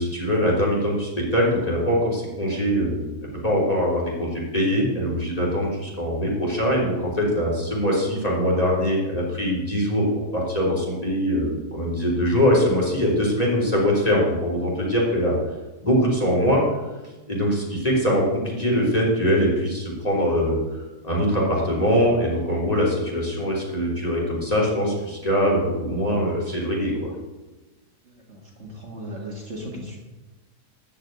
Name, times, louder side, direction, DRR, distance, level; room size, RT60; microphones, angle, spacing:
voice 1, 0.0-3.1 3.4-10.1 10.3-15.3 15.8-16.6 17.3-27.1, equal, 25° left, -3 dB, 3.5 m, -22 dB
voice 2, 28.3-30.0, equal, 45° right, -1 dB, 2.1 m, -36 dB
13.5 x 5.6 x 9.0 m, 1.2 s
omnidirectional pair, 1.7 m